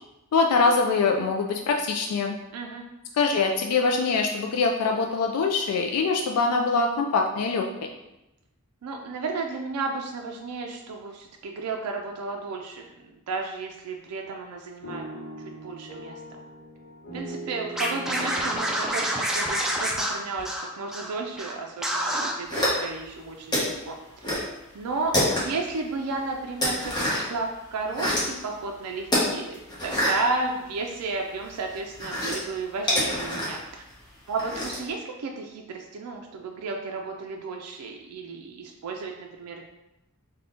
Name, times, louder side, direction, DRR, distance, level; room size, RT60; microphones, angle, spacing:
voice 1, 0.3-2.3 3.1-7.9, left 4 dB, 80° left, 2 dB, 0.3 m, -23 dB
voice 2, 2.5-2.8 8.8-12.9 13.3-16.4 17.1-24.3 24.7-33.8 34.3-39.6, right 3 dB, 85° right, 2 dB, 0.4 m, -33 dB
sound 1, 14.8-20.9, right 2 dB, 50° left, 0.9 m, -41 dB
Scratching (performance technique), 17.8-21.1 21.4-21.5 21.8-22.3, equal, ahead, 0.4 m, -27 dB
sound 2, 22.5-23.1 23.5-24.5 24.8-25.7 26.1-27.4 27.7-28.4 29.0-31.1 31.4-34.9, left 1 dB, 20° left, 1.0 m, -27 dB
3.5 x 2.2 x 3.7 m, 0.94 s
head